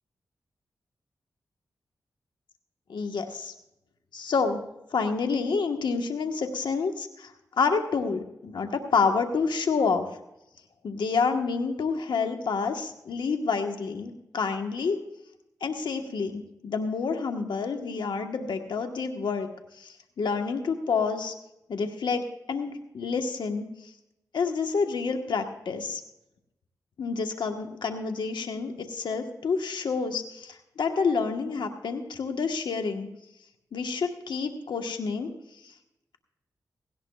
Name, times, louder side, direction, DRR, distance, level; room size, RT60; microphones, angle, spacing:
voice 1, 2.9-3.5 4.1-4.6 4.9-10.1 10.8-15.0 15.6-19.5 19.7-21.3 21.7-23.9 24.3-26.0 27.0-33.1 33.7-35.7, left 5 dB, 80° left, 5 dB, 1.2 m, -28 dB
17.5 x 16.5 x 2.3 m, 0.87 s
cardioid pair, 50°, 8 cm